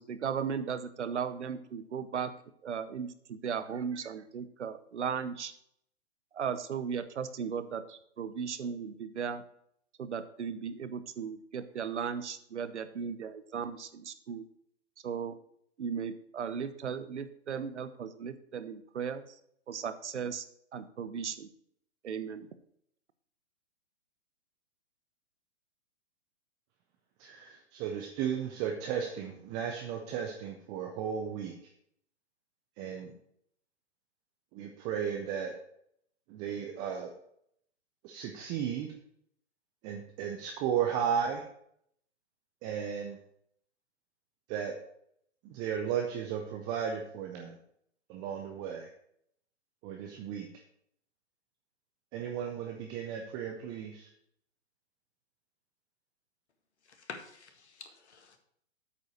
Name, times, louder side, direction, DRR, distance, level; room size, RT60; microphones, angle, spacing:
voice 1, 0.0-2.3 2.6-5.5 6.3-9.4 10.0-14.5 15.0-15.3 15.8-19.2 19.7-20.5 20.7-21.5 22.0-22.5, right 7 dB, 75° right, 13 dB, 1.0 m, -36 dB
voice 2, 27.2-31.5 32.8-33.1 34.5-35.5 36.3-37.1 38.0-38.9 39.8-41.4 42.6-43.2 44.5-44.7 45.4-47.6 48.1-48.9 49.8-50.5 52.1-54.1, right 8 dB, 15° right, 3 dB, 0.3 m, -34 dB
voice 3, 57.0-58.4, left 5 dB, 70° left, 5 dB, 1.9 m, -47 dB
8.3 x 5.2 x 6.2 m, 0.70 s
hypercardioid pair, 120°, 35 cm